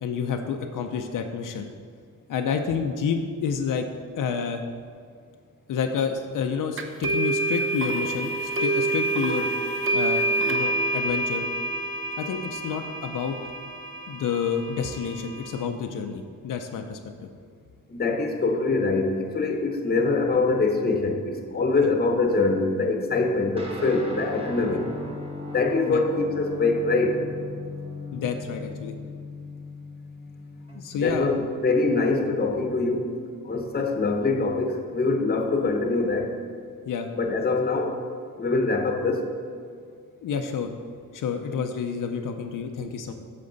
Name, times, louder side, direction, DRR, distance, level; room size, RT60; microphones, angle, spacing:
voice 1, 0.0-1.7 2.3-3.9 4.2-4.6 5.7-9.5 9.9-11.4 12.2-13.4 14.1-17.0 21.7-21.9 24.6-24.8 25.9-26.0 28.1-28.9 30.7-31.3 36.9-37.1 40.2-40.7 41.1-43.1, left 6 dB, 75° left, 4 dB, 0.6 m, -29 dB
sound 1, 6.8-15.6, right 2 dB, 40° right, 0.7 m, -27 dB
voice 2, 17.9-24.9 25.5-27.2 30.9-33.1 33.4-36.3 37.1-38.0 38.4-39.3, left 3 dB, 30° left, 3 dB, 0.9 m, -24 dB
Guitar, 23.6-31.3, left 3 dB, 15° right, 1.2 m, -38 dB
8.6 x 6.6 x 4.0 m, 2.2 s
wide cardioid pair, 125°, 32 cm